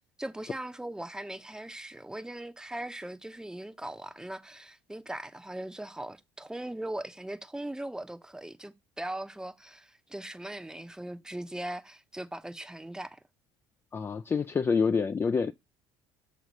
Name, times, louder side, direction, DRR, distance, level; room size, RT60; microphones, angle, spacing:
voice 1, 0.0-13.2, right 1 dB, 5° right, 0.7 m, -39 dB
voice 2, 13.9-15.5, left 5 dB, 20° left, 0.3 m, -27 dB
6.3 x 3.1 x 5.2 m
supercardioid pair, 95°, 11 cm